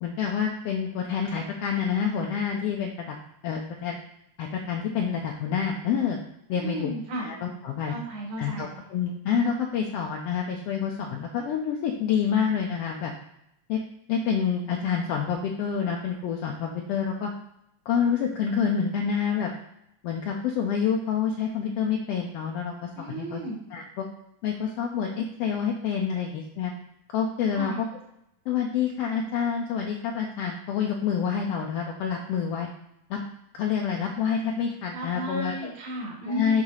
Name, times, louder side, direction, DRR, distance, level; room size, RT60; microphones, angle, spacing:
voice 1, 0.0-3.2 3.4-4.0 4.4-6.2 6.5-6.9 7.2-7.9 8.4-13.1 13.7-17.3 17.9-19.5 20.0-23.4 23.7-24.0 24.4-26.7 27.1-27.9 28.5-32.7 33.1-33.2 33.5-35.7 36.3-36.6, left 7 dB, 80° left, 1 dB, 1.4 m, -27 dB
voice 2, 6.5-7.3 7.9-8.7 23.0-23.6 27.5-27.8 34.9-36.6, right 1 dB, 75° right, -1 dB, 3.0 m, -34 dB
6.3 x 3.9 x 5.7 m, 0.78 s
omnidirectional pair, 3.4 m